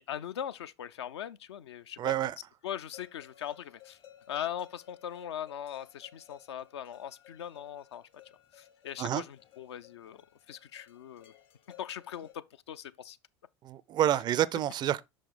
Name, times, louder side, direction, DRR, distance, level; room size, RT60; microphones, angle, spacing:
voice 1, 0.0-2.1 2.6-4.0 4.3-8.1 8.5-10.2 10.5-11.3 11.8-13.2, left 10 dB, 70° left, 0.4 m, -40 dB
voice 2, 2.0-2.4 9.0-9.2 13.6-15.0, right 11 dB, 30° right, 0.4 m, -28 dB
sound 1, 2.9-12.3, left 12 dB, 40° left, 0.8 m, -57 dB
6.1 x 5.0 x 3.7 m
figure-of-eight pair, 75°, 15 cm